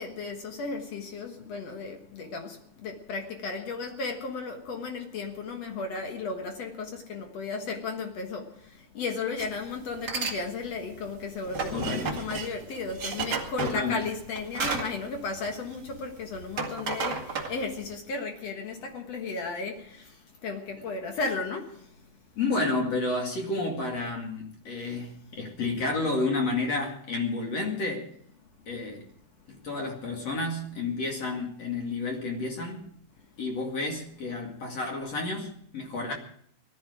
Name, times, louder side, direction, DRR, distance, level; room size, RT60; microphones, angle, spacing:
voice 1, 0.0-8.5 8.9-20.1 20.4-21.8, left 4 dB, 70° left, 1.5 m, -34 dB
sound 1, 9.4-9.6 9.9-10.4 10.7-16.0 16.3-17.9, right 4 dB, 90° right, 0.9 m, -33 dB
voice 2, 11.7-12.2 13.6-14.1 22.4-28.1 28.7-29.1 29.5-32.9 33.4-36.1, left 3 dB, 45° left, 2.6 m, -30 dB
19.0 x 12.5 x 5.0 m
omnidirectional pair, 5.3 m